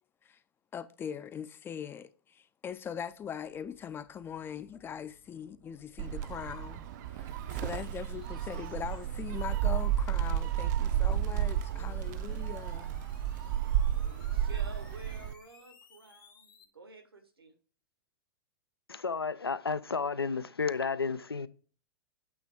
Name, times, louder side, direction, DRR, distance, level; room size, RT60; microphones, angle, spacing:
voice 1, 0.7-13.0, left 8 dB, 20° left, 0.4 m, -41 dB
sound 1, 2.7-16.6, left 5 dB, 65° left, 1.6 m, -59 dB
Gull seagull, 6.0-15.3, right 11 dB, 50° right, 0.5 m, -32 dB
voice 2, 14.0-17.5, right 2 dB, 85° right, 1.4 m, -51 dB
voice 3, 18.9-21.5, left 5 dB, 90° left, 0.4 m, -32 dB
8.5 x 3.4 x 4.6 m
figure-of-eight pair, 100°, 12 cm